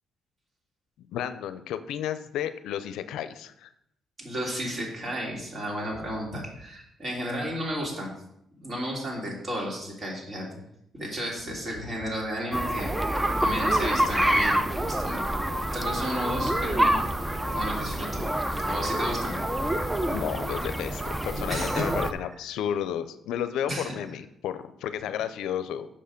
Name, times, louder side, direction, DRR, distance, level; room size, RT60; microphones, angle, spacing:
voice 1, 1.1-3.7 20.1-25.9, left 10 dB, 85° left, 12 dB, 0.5 m, -32 dB
voice 2, 4.2-8.1 8.6-10.5 10.9-12.9 13.3-15.2 15.5-18.2 18.6-19.4 21.3-22.0 23.7-24.0, equal, 40° right, -2 dB, 3.1 m, -33 dB
sound 1, 12.5-22.1, right 1 dB, 10° right, 0.5 m, -27 dB
6.6 x 5.6 x 5.1 m, 0.76 s
cardioid pair, 90°, 0 cm